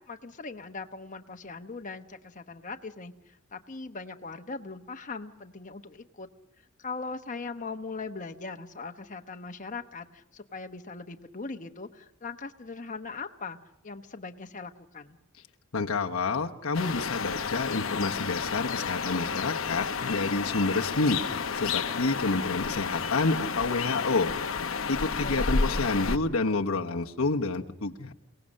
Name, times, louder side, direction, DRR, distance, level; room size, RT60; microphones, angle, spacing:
voice 1, 0.0-6.3 6.8-13.6 13.8-15.2 25.2-25.8, left 4 dB, 35° left, 6 dB, 1.0 m, -40 dB
voice 2, 15.7-21.2 21.5-24.3 24.9-28.1, left 3 dB, 90° left, 2 dB, 1.1 m, -28 dB
sound 1, 16.7-26.2, left 5 dB, 65° left, 0.9 m, -31 dB
29.0 x 18.5 x 6.5 m, 0.87 s
head